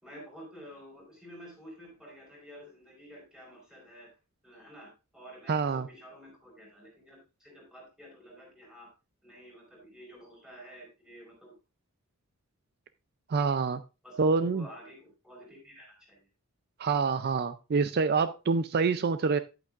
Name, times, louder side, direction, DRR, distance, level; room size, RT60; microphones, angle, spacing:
voice 1, 0.0-4.1 4.4-8.9 9.2-11.5 14.0-16.2, equal, 5° right, -3 dB, 4.6 m, -50 dB
voice 2, 5.5-5.9 13.3-13.8 14.2-14.7 16.8-19.4, right 4 dB, 45° right, 12 dB, 0.4 m, -26 dB
10.5 x 8.9 x 2.4 m, 0.29 s
head